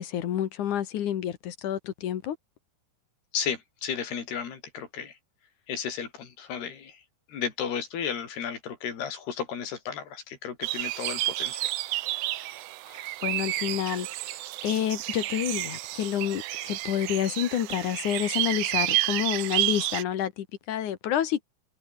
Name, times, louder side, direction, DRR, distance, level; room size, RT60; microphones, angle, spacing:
voice 1, 0.0-2.4 12.9-21.4, left 10 dB, 60° left, 2.6 m, -29 dB
voice 2, 3.3-5.1 5.7-7.0 7.3-11.7, left 7 dB, 75° left, 5.6 m, -34 dB
sound 1, 10.6-20.0, right 16 dB, 85° right, 1.8 m, -30 dB
omnidirectional pair, 4.6 m